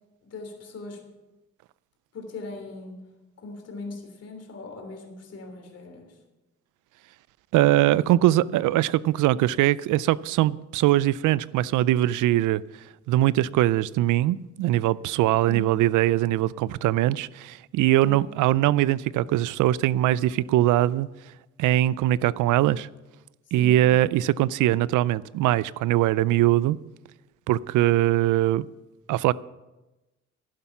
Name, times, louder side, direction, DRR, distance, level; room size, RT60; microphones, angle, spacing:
voice 1, 0.2-1.0 2.1-3.0 3.4-6.1 15.5-15.7 18.0-18.3 23.5-24.0, left 3 dB, 55° left, 3.2 m, -40 dB
voice 2, 7.5-12.6 13.1-21.1 21.6-22.9 23.5-26.8 27.5-28.7 29.1-29.3, right 14 dB, 85° right, 0.5 m, -22 dB
11.5 x 11.0 x 6.0 m
cardioid pair, 90°, 30 cm